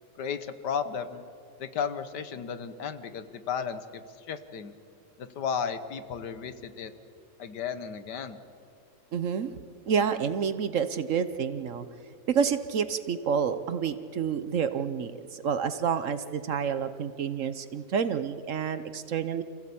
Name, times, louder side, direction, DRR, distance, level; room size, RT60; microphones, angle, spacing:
voice 1, 0.2-1.2 1.6-4.7 5.2-6.9 7.4-8.4, left 7 dB, 85° left, 11 dB, 1.7 m, -34 dB
voice 2, 9.1-9.5 9.9-11.8 12.3-19.4, right 7 dB, 60° right, 12 dB, 1.0 m, -29 dB
27.0 x 15.5 x 8.5 m, 2.7 s
omnidirectional pair, 1.8 m